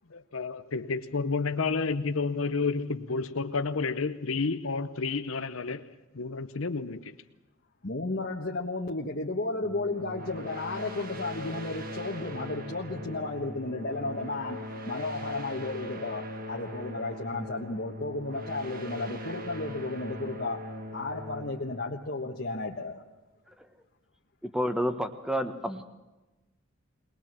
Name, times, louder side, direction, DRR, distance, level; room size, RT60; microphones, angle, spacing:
voice 1, 0.1-5.9 6.1-7.1, left 4 dB, 70° left, 0.8 m, -30 dB
voice 2, 7.8-23.0, left 2 dB, 50° left, 1.4 m, -34 dB
sound 1, 9.6-23.0, left 1 dB, 40° right, 1.7 m, -40 dB
voice 3, 24.4-25.8, equal, 5° right, 1.3 m, -29 dB
22.0 x 19.5 x 7.5 m
head